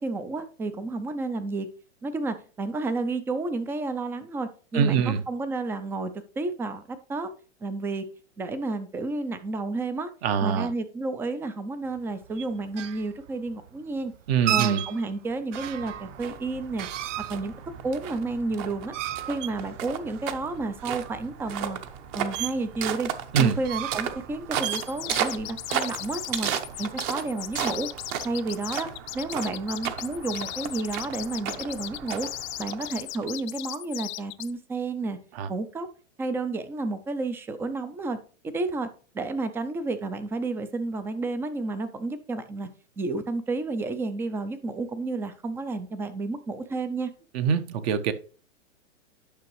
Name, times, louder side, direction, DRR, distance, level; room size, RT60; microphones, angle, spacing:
voice 1, 0.0-1.7 2.0-7.3 7.6-8.1 8.4-10.1 10.4-14.1 14.5-16.9 17.3-17.5 17.8-18.9 19.3-21.8 22.1-23.1 23.4-26.5 26.8-27.9 28.2-28.9 29.1-32.3 32.6-35.2 35.5-35.9 36.2-38.2 38.4-38.9 39.1-42.7 43.0-47.1, right 3 dB, 5° right, 11 dB, 0.3 m, -31 dB
voice 2, 4.7-5.2 10.2-10.7 14.3-14.8 23.3-23.6 35.3-35.5 47.3-48.1, right 7 dB, 50° right, 10 dB, 1.1 m, -24 dB
sound 1, 11.9-26.8, right 12 dB, 70° right, 0.6 m, -35 dB
sound 2, 15.5-33.2, right 9 dB, 35° right, 0.9 m, -35 dB
sound 3, 24.6-34.5, left 18 dB, 40° left, 0.6 m, -37 dB
10.5 x 5.8 x 3.1 m, 0.38 s
hypercardioid pair, 125°, 38 cm